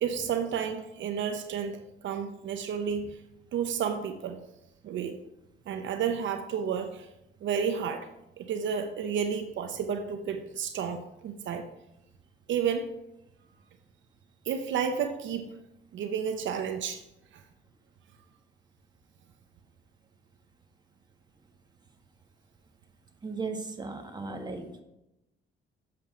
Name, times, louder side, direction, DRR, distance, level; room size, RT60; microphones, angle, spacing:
voice 1, 0.0-3.2 3.5-4.4 4.8-5.2 5.7-7.1 7.4-8.1 8.4-11.6 12.5-12.9 14.4-15.6 15.9-17.0 17.3-17.4, right 7 dB, 70° right, 7 dB, 0.8 m, -31 dB
voice 2, 23.2-24.8, right 3 dB, 20° right, 4 dB, 1.5 m, -36 dB
7.6 x 7.2 x 5.0 m, 0.90 s
cardioid pair, 90°, 20 cm